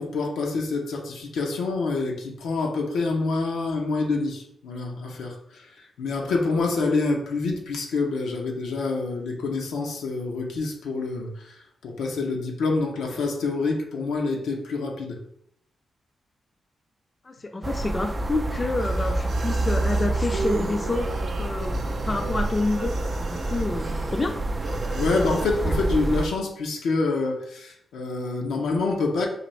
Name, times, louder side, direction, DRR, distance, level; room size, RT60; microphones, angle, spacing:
voice 1, 0.0-15.2 24.9-29.3, left 3 dB, 85° left, 1 dB, 0.7 m, -27 dB
voice 2, 17.2-21.1 21.4-21.8 22.0-22.9 23.2-24.4, left 2 dB, 35° left, 5 dB, 0.4 m, -28 dB
sound 1, 17.6-26.3, right 2 dB, 35° right, 0.3 m, -28 dB
sound 2, 18.8-25.4, right 3 dB, 70° right, 0.6 m, -35 dB
4.1 x 2.6 x 3.1 m, 0.72 s
cardioid pair, 55°, 0 cm